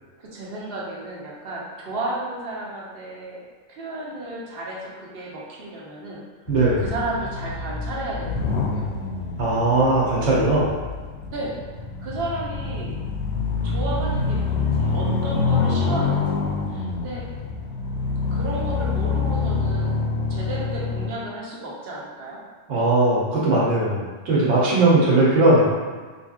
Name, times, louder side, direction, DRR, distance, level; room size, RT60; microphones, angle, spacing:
voice 1, 0.2-3.4 3.7-6.2 6.8-8.9 11.3-11.6 12.0-13.0 13.6-16.4 16.7-17.3 18.3-20.0 20.3-22.4, right 2 dB, 55° right, -4 dB, 0.9 m, -33 dB
sound 1, 6.5-21.1, left 4 dB, 70° left, 0.8 m, -26 dB
voice 2, 6.5-6.8 9.4-10.8 22.7-25.7, right 2 dB, 75° right, -6 dB, 1.2 m, -19 dB
4.3 x 2.8 x 2.4 m, 1.4 s
omnidirectional pair, 1.3 m